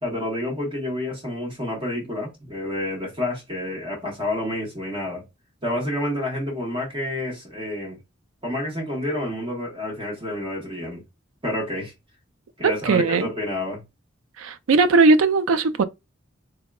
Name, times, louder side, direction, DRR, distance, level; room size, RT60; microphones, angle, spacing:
voice 1, 0.0-5.2 5.6-8.0 8.4-11.0 11.4-11.9 12.6-13.8, left 1 dB, 25° right, 1.2 m, -29 dB
voice 2, 12.8-13.3 14.4-15.8, right 3 dB, 90° right, 0.4 m, -18 dB
3.4 x 2.7 x 2.3 m
head